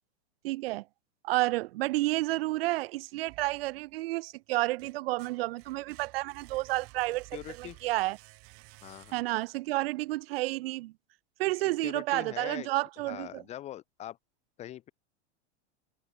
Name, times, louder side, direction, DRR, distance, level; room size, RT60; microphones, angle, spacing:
voice 1, 0.4-0.9 1.2-8.2 9.1-10.9 11.4-13.4, right 19 dB, 55° right, 0.5 m, -31 dB
sound 1, 3.3-4.1 4.5-9.6, right 26 dB, 40° right, 3.0 m, -54 dB
voice 2, 7.3-7.8 8.8-9.2 11.8-12.7 13.1-14.2 14.6-14.9, left 12 dB, 20° left, 0.6 m, -42 dB
supercardioid pair, 150°, 35 cm